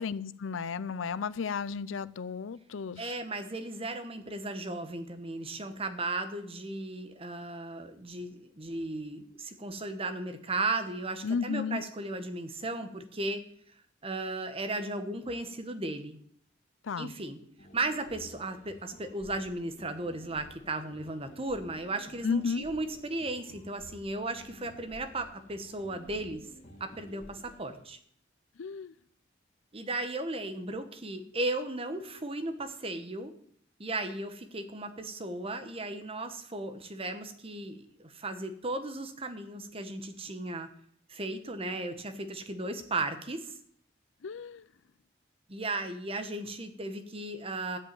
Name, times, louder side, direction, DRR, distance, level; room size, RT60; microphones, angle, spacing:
voice 1, 0.0-3.2 11.2-11.8 16.8-17.1 22.2-22.7 28.6-28.9 44.2-44.6, left 5 dB, 85° left, 17 dB, 0.5 m, -33 dB
voice 2, 3.0-13.5 14.0-16.2 17.0-17.4 17.7-26.5 26.8-28.0 29.7-33.3 33.8-40.7 41.1-43.5 45.5-47.8, right 2 dB, 30° right, 8 dB, 1.2 m, -35 dB
sound 1, 17.6-27.8, equal, 40° left, 2.4 m, -53 dB
13.5 x 5.5 x 8.9 m, 0.65 s
head